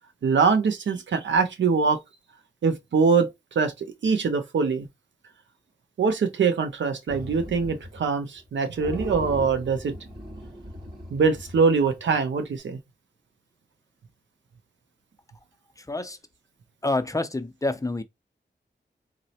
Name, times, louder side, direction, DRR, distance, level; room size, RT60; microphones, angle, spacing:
voice 1, 0.2-2.0 2.6-3.3 3.6-4.9 6.0-10.0 11.1-12.8, right 5 dB, 80° right, 0.6 m, -23 dB
sound 1, 7.1-8.1 8.4-8.5 8.8-12.2, equal, 65° right, 2.4 m, -39 dB
voice 2, 15.8-16.2 16.8-18.0, left 2 dB, 20° left, 0.4 m, -27 dB
3.9 x 2.0 x 2.8 m
cardioid pair, 50°, 19 cm